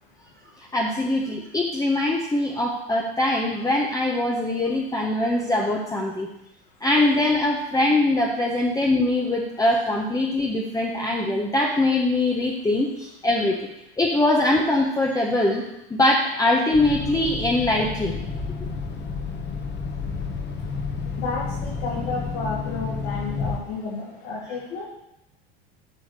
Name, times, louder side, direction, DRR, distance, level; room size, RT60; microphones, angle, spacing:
voice 1, 0.6-6.3 6.8-13.7 14.0-15.6 15.9-18.2, left 2 dB, 10° left, -1 dB, 1.2 m, -22 dB
sound 1, 16.7-23.6, left 5 dB, 35° left, 1.5 m, -30 dB
voice 2, 21.2-24.8, left 4 dB, 60° left, -9 dB, 3.0 m, -31 dB
8.5 x 4.9 x 6.7 m, 0.89 s
hypercardioid pair, 95°, 31 cm